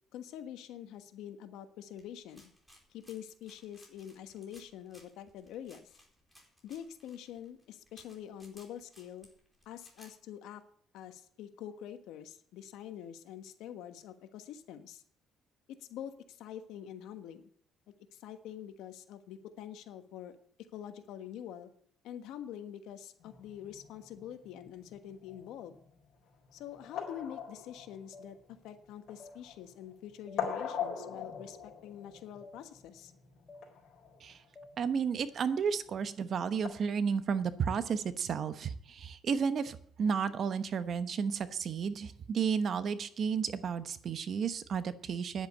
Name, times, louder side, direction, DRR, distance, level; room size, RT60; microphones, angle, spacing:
voice 1, 0.1-2.5 2.9-5.9 6.6-9.3 9.6-10.6 10.9-15.0 15.7-17.5 18.1-20.4 20.7-21.7 22.0-25.8 26.5-33.1, left 10 dB, 85° left, 9 dB, 1.3 m, -46 dB
sound 1, 2.0-10.1, equal, ahead, 4.5 m, -61 dB
sound 2, 23.2-36.7, left 7 dB, 60° left, 4.4 m, -43 dB
sound 3, 27.1-27.2 28.1-28.3 29.2-29.4 30.3-30.4 31.3-31.5 32.4-32.6 33.5-33.6 34.6-34.7, left 2 dB, 25° left, 1.3 m, -51 dB
voice 2, 34.8-45.5, right 6 dB, 50° right, 12 dB, 1.0 m, -32 dB
10.5 x 8.0 x 8.5 m, 0.63 s
cardioid pair, 110°, 0 cm